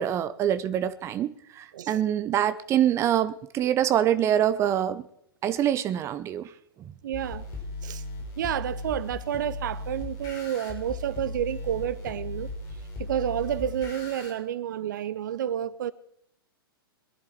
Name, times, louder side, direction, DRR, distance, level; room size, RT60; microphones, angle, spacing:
voice 1, 0.0-5.0 5.4-6.5, right 10 dB, 20° right, 0.7 m, -25 dB
voice 2, 7.0-7.5 7.8-8.0 8.4-12.5 13.0-15.9, right 10 dB, 55° right, 0.7 m, -30 dB
sound 1, 7.1-14.3, left 2 dB, 30° left, 5.3 m, -37 dB
21.5 x 11.0 x 4.6 m
figure-of-eight pair, 110°, 12 cm